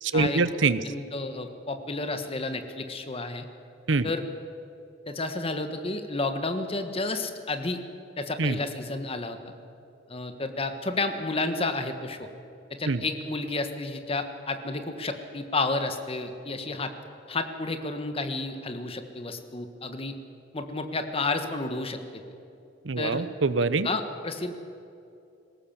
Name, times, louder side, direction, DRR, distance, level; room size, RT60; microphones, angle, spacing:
voice 1, 0.0-0.8 3.9-4.1 8.4-8.6 12.9-13.0 22.8-23.9, right 4 dB, 85° right, 14 dB, 0.8 m, -24 dB
voice 2, 0.8-3.4 4.0-4.2 5.1-7.8 8.2-9.5 10.1-12.3 12.7-16.9 17.3-20.1 20.5-22.2 23.0-23.3 23.8-24.5, left 2 dB, 30° left, 7 dB, 1.4 m, -31 dB
20.0 x 17.5 x 7.3 m, 2.7 s
head